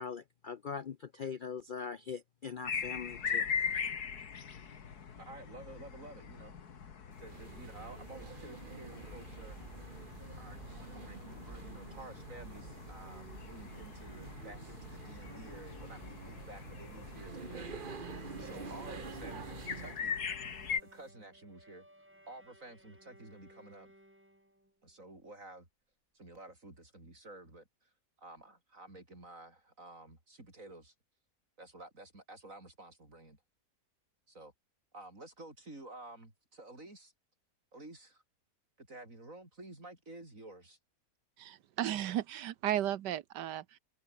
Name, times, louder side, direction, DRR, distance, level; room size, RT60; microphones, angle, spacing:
voice 1, 0.0-3.5, left 6 dB, 85° left, 0.4 m, -41 dB
sound 1, 2.6-20.8, left 7 dB, 65° left, 2.2 m, -41 dB
voice 2, 5.2-6.6 7.2-9.6 10.4-17.9 18.4-20.2 20.5-21.9 22.3-23.9 24.8-25.7 26.1-27.9 28.2-30.9 31.6-33.4 34.3-34.5 34.9-37.1 37.7-38.2 38.8-40.8, right 2 dB, 50° right, 6.9 m, -51 dB
sound 2, 7.1-20.1, right 5 dB, 35° right, 1.2 m, -48 dB
Bowed string instrument, 18.0-24.7, equal, 5° right, 3.8 m, -57 dB
voice 3, 41.4-43.8, right 11 dB, 90° right, 1.5 m, -35 dB
omnidirectional pair, 1.8 m